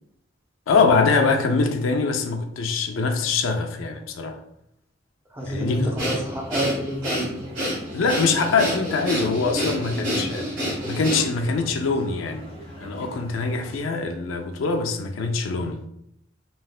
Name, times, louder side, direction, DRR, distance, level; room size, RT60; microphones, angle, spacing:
voice 1, 0.7-4.4 5.5-5.9 7.9-10.5 10.9-12.5 12.8-15.8, left 4 dB, 90° left, 0.4 m, -23 dB
voice 2, 5.3-7.5, equal, 15° right, 0.4 m, -29 dB
sound 1, 5.4-13.8, equal, 30° right, 0.7 m, -41 dB
Breathing, 6.0-11.5, equal, 75° right, 1.3 m, -28 dB
3.1 x 2.7 x 2.3 m
head